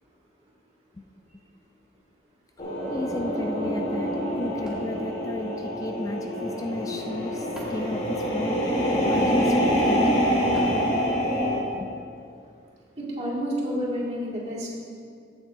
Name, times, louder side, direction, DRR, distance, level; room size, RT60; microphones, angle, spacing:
sound 1, 2.6-11.6, equal, 35° left, 1.7 m, -25 dB
voice 1, 2.9-4.1 4.4-8.6 9.1-10.3 11.7-11.9, left 1 dB, 20° left, 5 dB, 0.3 m, -34 dB
sound 2, 4.6-6.2 7.0-9.0 10.5-12.1, equal, 5° right, 1.6 m, -44 dB
voice 2, 13.0-14.7, equal, 40° right, -5 dB, 2.2 m, -29 dB
15.5 x 7.3 x 2.6 m, 2.3 s
head